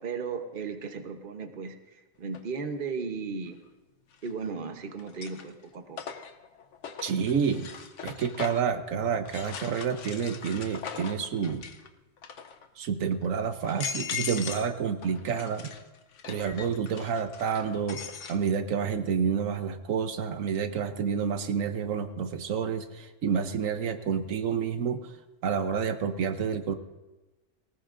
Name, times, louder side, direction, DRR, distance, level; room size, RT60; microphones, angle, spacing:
voice 1, 0.0-1.8 2.2-3.6 4.2-6.0, right 5 dB, 45° right, 6 dB, 1.1 m, -35 dB
sound 1, 2.3-2.4 4.1-4.6 5.0-8.8 9.3-11.9 12.2-12.7 13.2-13.3 13.6-14.7 15.0-18.4, left 7 dB, 70° left, 1.1 m, -40 dB
voice 2, 7.0-7.7 8.0-11.6 12.8-15.7 16.3-25.1 25.4-26.7, right 6 dB, 85° right, 8 dB, 1.3 m, -29 dB
19.0 x 18.5 x 2.6 m, 1.1 s
omnidirectional pair, 1.3 m